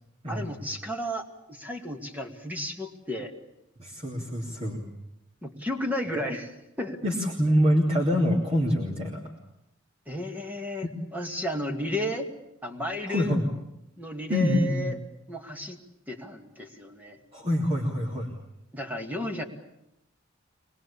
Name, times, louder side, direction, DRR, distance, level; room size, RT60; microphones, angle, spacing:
voice 1, 0.3-3.3 5.4-6.5 6.8-7.0 10.1-10.9 11.1-12.3 12.6-13.3 14.0-15.0 15.3-15.8 16.1-17.2 18.7-19.4, left 1 dB, 10° right, 4 dB, 2.2 m, -33 dB
voice 2, 3.8-4.8 6.1-6.2 7.0-9.2 13.1-13.5 14.3-14.9 17.3-18.3, equal, 30° right, -1 dB, 3.1 m, -25 dB
25.0 x 20.5 x 8.6 m, 0.83 s
head